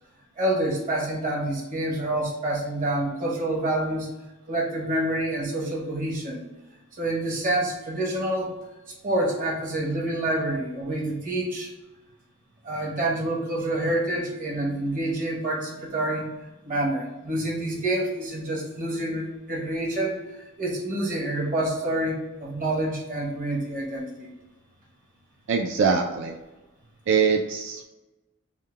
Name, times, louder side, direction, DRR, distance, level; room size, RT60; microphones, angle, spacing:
voice 1, 0.4-4.1 4.5-6.5 7.0-8.5 9.0-11.7 12.6-16.3 16.6-24.3, right 1 dB, 40° right, -3 dB, 1.2 m, -27 dB
voice 2, 25.5-26.3 27.1-27.8, right 5 dB, 60° right, 2 dB, 0.4 m, -23 dB
3.6 x 2.2 x 4.4 m, 1.1 s
head